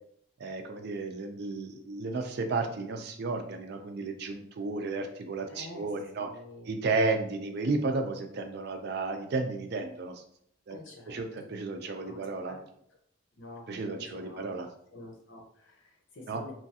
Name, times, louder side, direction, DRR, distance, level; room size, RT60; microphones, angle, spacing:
voice 1, 0.4-6.3 6.7-10.2 10.7-10.8 11.1-12.5 13.7-14.7 16.3-16.4, right 3 dB, 55° right, 6 dB, 0.4 m, -33 dB
voice 2, 5.5-5.9 6.2-6.7 10.7-11.2 12.0-12.7 13.4-14.5 14.9-16.5, left 2 dB, 75° left, 0 dB, 0.8 m, -48 dB
3.0 x 2.4 x 2.7 m, 0.66 s
head